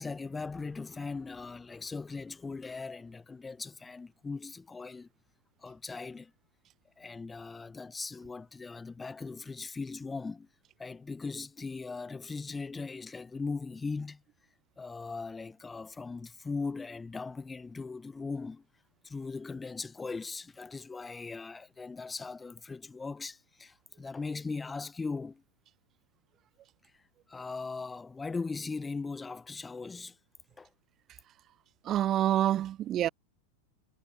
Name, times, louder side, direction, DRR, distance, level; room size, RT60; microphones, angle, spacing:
voice 1, 0.0-5.1 5.6-6.3 7.0-10.5 10.8-14.2 14.8-18.6 19.0-25.4 27.3-30.2 30.6-30.7, left 4 dB, 10° left, 6.3 m, -39 dB
voice 2, 31.9-33.1, right 12 dB, 30° right, 0.4 m, -27 dB
figure-of-eight pair, 90°, 0 cm